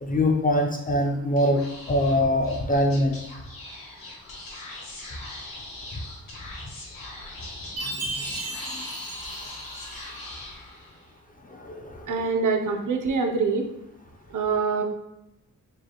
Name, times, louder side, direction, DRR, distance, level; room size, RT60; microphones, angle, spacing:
voice 1, 0.0-1.6 1.9-3.2 8.0-8.1 11.6-12.3, left 1 dB, 25° left, 1 dB, 0.3 m, -23 dB
Speech / Whispering, 1.3-11.1, left 2 dB, 75° left, 1.1 m, -41 dB
Chime, 7.8-10.3, right 2 dB, 90° right, 1.1 m, -35 dB
voice 2, 12.1-13.7 14.3-14.8, right 4 dB, 60° right, 4 dB, 0.6 m, -24 dB
4.7 x 2.3 x 2.9 m, 0.86 s
wide cardioid pair, 170°, 35 cm